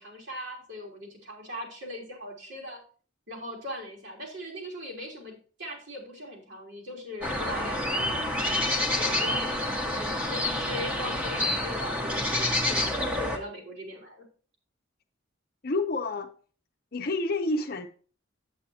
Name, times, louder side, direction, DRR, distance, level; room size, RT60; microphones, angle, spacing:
voice 1, 0.0-2.8 3.3-12.9 13.2-14.3, left 1 dB, 65° right, -2 dB, 3.5 m, -40 dB
sound 1, 7.2-13.4, left 1 dB, 5° right, 1.1 m, -28 dB
voice 2, 15.6-16.3 16.9-17.9, left 2 dB, 50° left, 3 dB, 0.7 m, -28 dB
9.0 x 8.4 x 2.9 m, 0.39 s
head